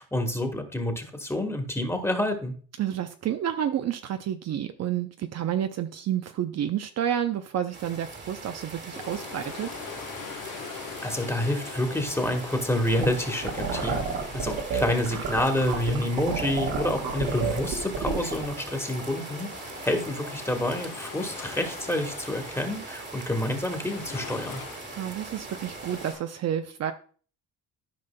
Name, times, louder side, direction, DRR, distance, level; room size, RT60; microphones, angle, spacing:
voice 1, 0.0-2.5 11.0-14.0 14.3-19.5 19.8-24.6, left 1 dB, 10° left, 5 dB, 1.5 m, -28 dB
voice 2, 2.8-9.7 24.9-26.9, right 10 dB, 50° right, 8 dB, 0.6 m, -30 dB
sound 1, 7.7-26.1, right 3 dB, 35° right, 1.5 m, -41 dB
sound 2, 8.9-26.2, left 7 dB, 70° left, 1.2 m, -43 dB
sound 3, 12.9-18.5, right 5 dB, 80° right, 1.7 m, -30 dB
13.5 x 5.1 x 2.2 m, 0.42 s
cardioid pair, 95°, 33 cm